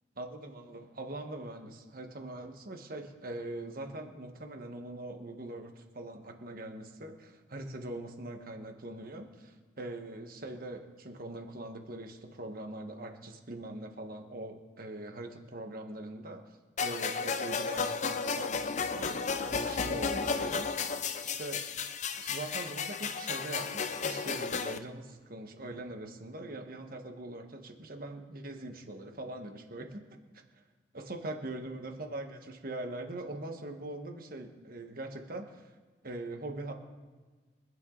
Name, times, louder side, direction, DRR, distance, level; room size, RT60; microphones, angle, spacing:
voice 1, 0.2-16.4 16.8-20.7 21.2-21.6 22.2-30.0 30.5-30.6 30.9-35.7 36.0-36.7, right 1 dB, 55° right, 5 dB, 1.5 m, -42 dB
sound 1, 16.8-24.8, left 5 dB, 40° left, 0.6 m, -33 dB
24.5 x 9.4 x 4.0 m, 1.4 s
head